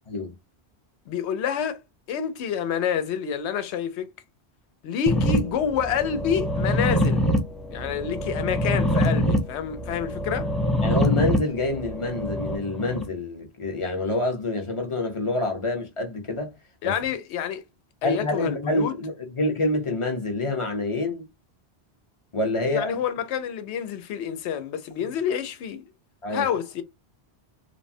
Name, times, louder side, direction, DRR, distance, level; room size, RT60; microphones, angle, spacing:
voice 1, 1.1-1.8 2.1-4.1 4.8-7.3 7.7-10.5 16.8-17.6 18.0-18.9 22.6-25.9 26.3-26.8, left 8 dB, 85° left, 0.9 m, -28 dB
sound 1, 5.1-13.0, equal, ahead, 0.3 m, -25 dB
voice 2, 10.8-16.5 16.8-16.9 18.0-21.2 22.3-23.0 26.2-26.4, left 2 dB, 35° left, 0.7 m, -27 dB
3.2 x 2.1 x 2.6 m
omnidirectional pair, 1.1 m